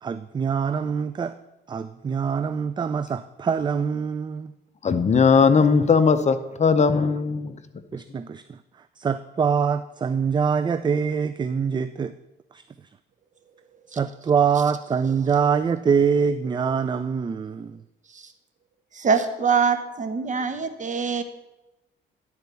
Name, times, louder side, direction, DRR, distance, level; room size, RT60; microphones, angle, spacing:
voice 1, 0.0-1.4 1.7-4.5 7.9-12.1 12.5-12.6 13.9-17.8, right 6 dB, 25° right, 12 dB, 0.3 m, -24 dB
voice 2, 4.8-7.5, left 5 dB, 35° left, 11 dB, 0.7 m, -18 dB
voice 3, 18.9-21.2, right 5 dB, 40° right, 8 dB, 1.1 m, -24 dB
10.5 x 4.6 x 6.7 m, 0.97 s
cardioid pair, 90°, 20 cm